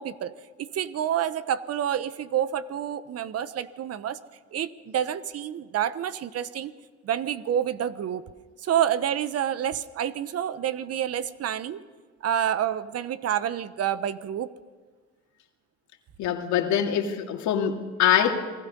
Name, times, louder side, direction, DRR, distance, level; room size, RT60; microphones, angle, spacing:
voice 1, 0.0-4.2 4.5-6.7 7.0-8.2 8.6-11.8 12.2-14.5, right 10 dB, 55° right, 15 dB, 1.1 m, -28 dB
voice 2, 16.2-18.4, left 9 dB, 70° left, 4 dB, 2.5 m, -24 dB
28.0 x 20.5 x 5.4 m, 1.5 s
supercardioid pair, 85°, 30 cm